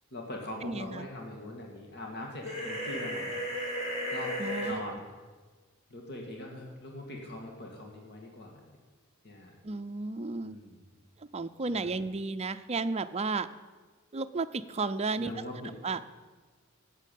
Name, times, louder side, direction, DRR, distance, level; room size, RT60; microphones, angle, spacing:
voice 1, 0.1-3.4 4.1-4.4 4.6-5.0 5.9-8.6 9.2-9.5 10.4-10.8 11.7-12.0 15.2-15.7, left 1 dB, 50° left, 0 dB, 2.1 m, -42 dB
voice 2, 0.6-1.1 4.4-4.8 9.6-10.6 11.3-13.5 14.1-15.3 15.8-16.0, right 3 dB, 30° right, 10 dB, 0.5 m, -33 dB
sound 1, 2.4-4.7, equal, 30° left, 4.3 m, -34 dB
12.0 x 8.2 x 8.5 m, 1.4 s
head